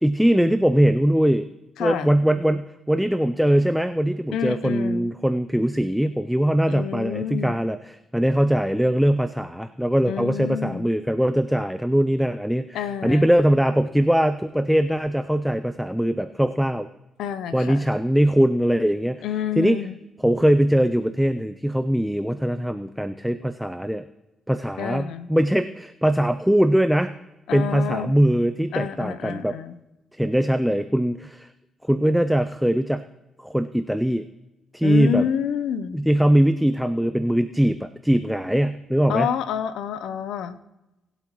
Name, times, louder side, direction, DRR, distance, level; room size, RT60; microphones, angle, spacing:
voice 1, 0.0-1.5 1.8-16.9 17.5-19.2 19.6-19.8 20.2-24.0 24.5-27.2 27.5-29.6 30.1-31.5 31.8-33.0 33.4-34.3 34.7-35.3 35.9-39.3, equal, ahead, 10 dB, 0.4 m, -21 dB
voice 2, 1.8-2.1 4.3-5.1 6.7-7.5 10.1-10.9 12.7-13.4 17.2-17.9 19.2-20.0 24.8-25.3 27.5-28.1 28.7-29.8 34.8-36.0 39.1-40.6, left 8 dB, 85° left, 14 dB, 0.7 m, -28 dB
20.5 x 8.2 x 3.0 m, 0.98 s
cardioid pair, 90°, 0 cm